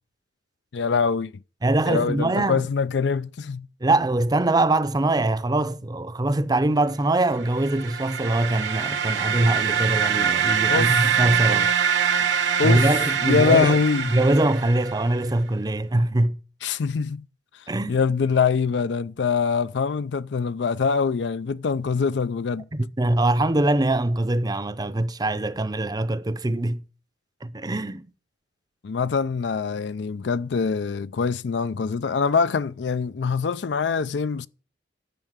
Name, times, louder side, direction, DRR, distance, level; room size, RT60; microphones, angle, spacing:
voice 1, 0.7-1.3 1.9-3.7 10.7-11.0 12.6-12.9 13.2-14.1 16.6-17.2 17.9-22.6 28.8-34.5, left 5 dB, 70° left, 0.4 m, -24 dB
voice 2, 1.6-2.7 3.8-11.7 12.6-13.8 14.1-16.4 17.7-18.0 22.7-26.8 27.4-28.1, right 2 dB, 20° right, 0.6 m, -23 dB
sound 1, 7.4-15.2, right 7 dB, 75° right, 1.0 m, -24 dB
11.0 x 5.7 x 8.0 m
head